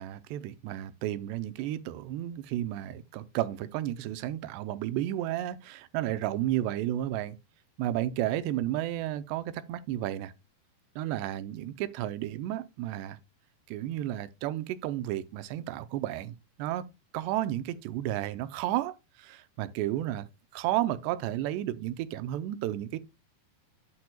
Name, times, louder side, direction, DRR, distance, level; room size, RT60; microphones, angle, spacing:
voice 1, 0.0-7.4 7.8-10.3 11.0-13.2 13.7-16.9 17.1-20.3 20.5-23.0, right 13 dB, 85° right, 2.8 m, -32 dB
9.7 x 8.6 x 2.3 m
omnidirectional pair, 4.8 m